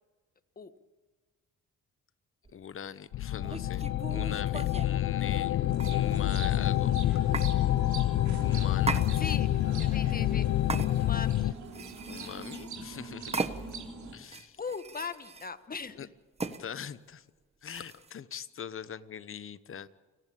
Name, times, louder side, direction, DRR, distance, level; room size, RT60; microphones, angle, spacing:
sound 1, 2.4-2.6 3.4-4.9 5.8-6.4 7.3-7.5 8.8-9.6 10.7-11.3 11.7-12.8 13.3-13.9 14.2-15.5 16.4-16.6 17.7-18.1, right 4 dB, 20° right, 1.3 m, -37 dB
voice 1, 2.5-7.3 8.4-9.0 12.1-13.4 14.1-14.6 16.0-16.1 16.6-17.2 17.6-19.9, left 8 dB, 45° left, 15 dB, 1.1 m, -42 dB
sound 2, 3.1-11.5, left 13 dB, 70° left, 0.6 m, -27 dB
voice 2, 5.2-5.7 9.1-9.5 9.8-10.5 10.8-11.5 14.6-16.1, left 5 dB, 30° left, 10 dB, 1.5 m, -39 dB
sound 3, 5.7-14.1, right 4 dB, 70° right, 3.7 m, -43 dB
29.0 x 11.0 x 8.6 m, 1.4 s
cardioid pair, 90°, 30 cm